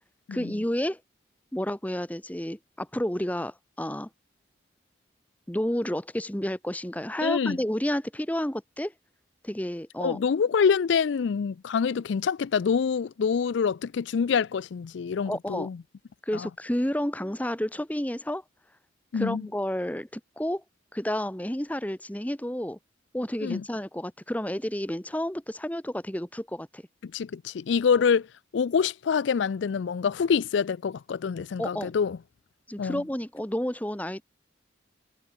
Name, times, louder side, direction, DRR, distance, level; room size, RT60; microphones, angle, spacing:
voice 1, 0.3-1.0 1.5-4.1 5.5-8.9 9.4-10.2 15.3-15.7 16.3-18.4 19.1-20.6 20.9-22.8 23.1-26.8 31.6-31.9 32.7-34.2, equal, 10° left, 1.1 m, -30 dB
voice 2, 7.2-7.6 10.0-15.8 16.3-16.5 19.1-19.5 23.4-23.6 27.0-28.3 28.5-32.2 32.8-33.0, left 6 dB, 75° left, 0.4 m, -26 dB
head